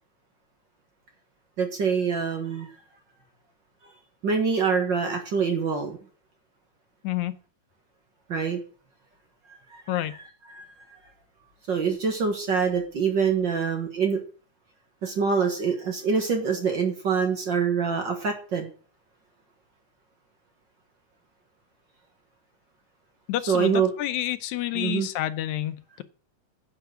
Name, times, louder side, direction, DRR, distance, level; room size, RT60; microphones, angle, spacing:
voice 1, 1.6-2.7 4.2-6.0 8.3-8.6 10.5-10.6 11.7-14.2 15.0-18.7 23.5-23.9 24.7-25.1, right 6 dB, 45° right, 4 dB, 1.8 m, -25 dB
voice 2, 23.3-26.0, left 14 dB, 80° left, 12 dB, 2.0 m, -29 dB
10.5 x 6.0 x 8.1 m, 0.40 s
omnidirectional pair, 3.5 m